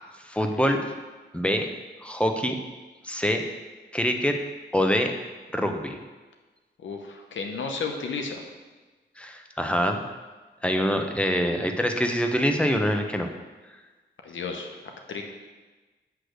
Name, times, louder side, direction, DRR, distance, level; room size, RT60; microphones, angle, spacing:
voice 1, 0.2-0.8 1.3-1.7 2.0-2.6 3.0-3.4 3.9-4.3 4.7-5.1 5.5-6.0 9.2-10.0 10.6-13.3, equal, 5° left, 4 dB, 0.8 m, -25 dB
voice 2, 6.8-8.4 14.2-15.2, left 4 dB, 85° left, 3 dB, 0.9 m, -33 dB
8.2 x 3.2 x 6.4 m, 1.3 s
cardioid pair, 65°, 19 cm